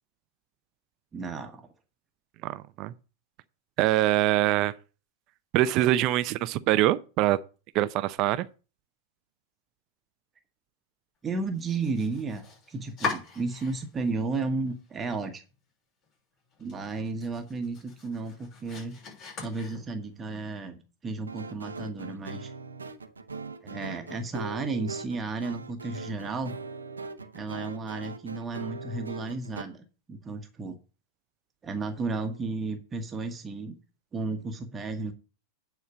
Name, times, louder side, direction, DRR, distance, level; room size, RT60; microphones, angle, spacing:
voice 1, 1.1-1.7 11.2-15.4 16.6-19.0 19.4-22.5 23.6-26.6 27.3-30.8 31.6-33.8 34.1-35.1, right 3 dB, 20° right, 1.3 m, -33 dB
voice 2, 2.4-2.9 3.8-4.7 5.5-7.4 7.7-8.5, right 14 dB, 45° right, 0.6 m, -24 dB
Domestic sounds home sounds, 11.5-14.1 14.4-15.2 15.5-15.6 16.0-16.1 16.5-20.2, left 4 dB, 35° left, 6.4 m, -40 dB
sound 1, 21.3-29.6, right 4 dB, 85° right, 0.8 m, -41 dB
9.4 x 4.5 x 7.0 m
figure-of-eight pair, 90°, 0 cm